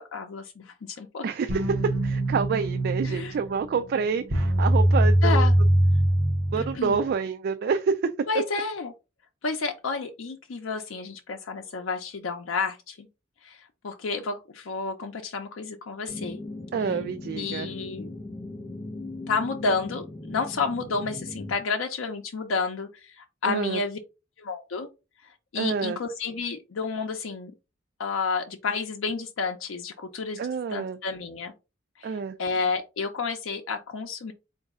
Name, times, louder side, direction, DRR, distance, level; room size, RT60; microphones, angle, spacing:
voice 1, 0.0-1.2 3.0-3.3 5.2-5.5 6.6-7.0 8.3-8.9 9.4-13.1 13.4-16.4 17.3-18.1 19.3-24.0 24.4-24.9 25.2-27.5 28.0-30.4 30.7-31.5 32.0-34.3, left 4 dB, 75° left, 0.5 m, -31 dB
voice 2, 1.2-5.5 6.5-8.1 16.7-17.7 23.4-23.8 25.6-26.0 30.4-31.0 32.0-32.4, right 5 dB, 55° right, 0.3 m, -28 dB
sound 1, 1.5-7.1, right 1 dB, 75° right, 0.8 m, -23 dB
sound 2, 16.1-21.5, left 2 dB, 30° left, 1.6 m, -38 dB
4.0 x 2.6 x 3.5 m
head